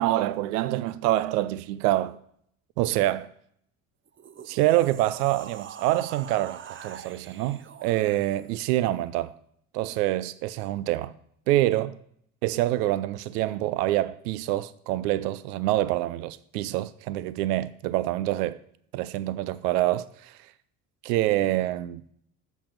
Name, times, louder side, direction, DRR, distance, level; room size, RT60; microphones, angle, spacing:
voice 1, 0.0-2.2 2.8-3.3 4.5-9.3 9.7-11.1 11.5-12.0 12.4-18.6 18.9-20.4 21.0-22.0, right 15 dB, 85° right, 0.6 m, -26 dB
sound 1, 4.1-8.7, right 8 dB, 25° right, 0.6 m, -44 dB
7.0 x 6.0 x 7.2 m
hypercardioid pair, 65°, 46 cm